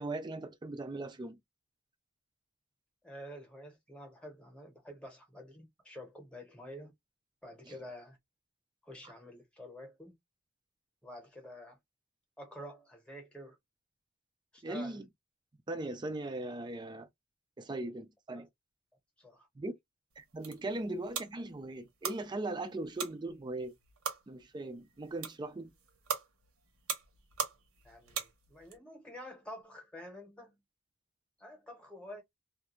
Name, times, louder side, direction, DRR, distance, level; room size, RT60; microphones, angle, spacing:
voice 1, 0.0-1.4 14.6-15.1 15.7-17.1 17.6-18.5 19.6-19.7 20.2-23.7 24.3-25.7, right 2 dB, 20° right, 0.3 m, -39 dB
voice 2, 3.0-6.9 7.4-8.2 8.8-10.1 11.0-11.8 12.4-13.6 14.5-15.0 18.3-18.4 19.2-19.5 27.8-30.6 31.4-32.2, left 1 dB, 5° left, 0.9 m, -48 dB
sound 1, 20.1-28.8, right 6 dB, 80° right, 0.9 m, -42 dB
2.3 x 2.2 x 2.8 m
head